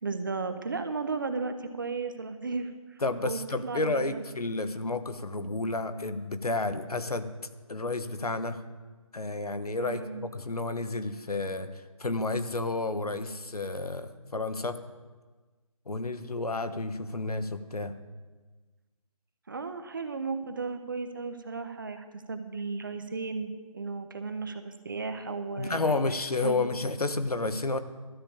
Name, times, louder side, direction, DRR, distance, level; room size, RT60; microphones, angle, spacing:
voice 1, 0.0-4.2 9.8-10.2 19.5-26.0 26.4-26.6, right 4 dB, 35° right, 9 dB, 0.9 m, -35 dB
voice 2, 3.0-7.3 7.7-8.6 9.1-14.8 15.9-17.9 25.6-27.8, left 2 dB, 80° left, 10 dB, 1.4 m, -31 dB
13.0 x 7.2 x 8.5 m, 1.3 s
figure-of-eight pair, 165°, 19 cm